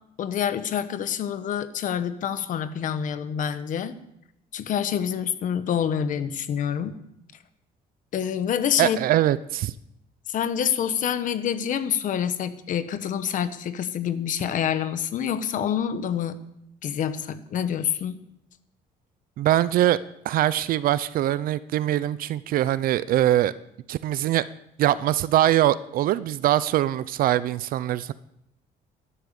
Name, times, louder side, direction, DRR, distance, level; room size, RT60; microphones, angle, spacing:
voice 1, 0.2-4.0 4.5-6.9 8.1-9.0 10.3-16.4 16.8-18.2, left 8 dB, 55° left, 12 dB, 1.1 m, -27 dB
voice 2, 8.8-9.7 19.4-20.0 20.2-23.5 23.9-24.4 24.8-28.1, right 13 dB, 65° right, 17 dB, 0.5 m, -22 dB
12.5 x 11.5 x 7.0 m, 0.79 s
cardioid pair, 155°, 16 cm